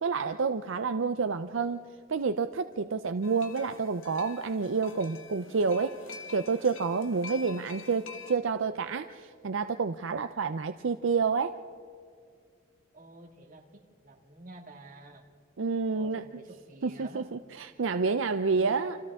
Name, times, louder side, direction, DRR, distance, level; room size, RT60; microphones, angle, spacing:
voice 1, 0.0-1.8 2.1-6.0 6.3-11.5 15.6-16.2 16.8-19.0, right 5 dB, 75° right, 9 dB, 0.5 m, -29 dB
sound 1, 3.2-8.4, left 5 dB, 85° left, 1.4 m, -47 dB
voice 2, 12.9-15.2 15.9-17.3 18.5-18.8, right 2 dB, 45° right, 1 dB, 2.1 m, -49 dB
29.0 x 27.0 x 3.6 m, 2.2 s
head